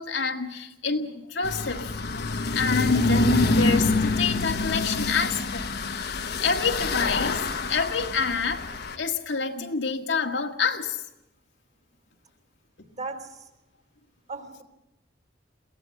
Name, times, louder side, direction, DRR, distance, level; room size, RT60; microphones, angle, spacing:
voice 1, 0.0-6.0 6.4-7.4 7.7-8.7 9.0-11.0, left 4 dB, 85° left, 1.9 m, -27 dB
sound 1, 1.4-9.0, left 3 dB, 60° left, 1.2 m, -26 dB
voice 2, 12.8-13.5 14.3-14.6, right 3 dB, 45° right, 3.4 m, -37 dB
22.5 x 17.0 x 7.7 m
head